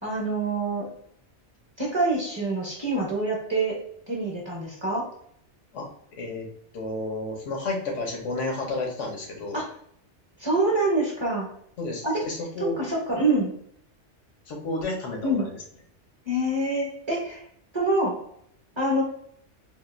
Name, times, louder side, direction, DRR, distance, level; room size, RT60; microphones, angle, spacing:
voice 1, 0.0-0.9 1.8-3.8 4.1-5.1 9.5-9.7 10.4-11.5 12.0-12.2 12.6-13.5 15.2-15.5 16.2-17.4 17.7-18.1 18.8-19.0, right 2 dB, 25° right, -3 dB, 0.8 m, -25 dB
voice 2, 6.2-6.5 6.7-9.6 11.8-12.8 14.5-15.5, left 2 dB, 85° left, 1 dB, 1.2 m, -31 dB
3.5 x 2.5 x 2.5 m, 0.67 s
omnidirectional pair, 1.2 m